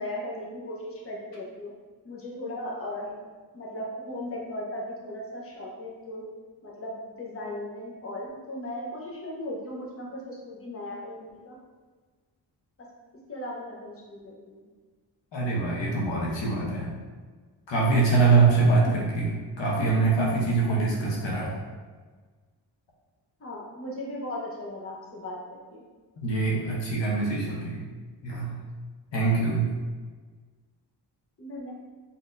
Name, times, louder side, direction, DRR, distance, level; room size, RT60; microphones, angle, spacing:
voice 1, 0.0-1.7 2.0-3.1 3.5-6.2 6.6-11.6 13.3-14.6 18.8-19.0 23.4-25.8 31.4-31.7, left 1 dB, 30° left, -3 dB, 0.9 m, -37 dB
voice 2, 15.3-16.9 17.7-21.6 26.2-27.8 28.2-28.5 29.1-29.7, right 3 dB, 90° left, -4 dB, 1.0 m, -24 dB
4.1 x 3.6 x 2.6 m, 1.4 s
cardioid pair, 90°, 43 cm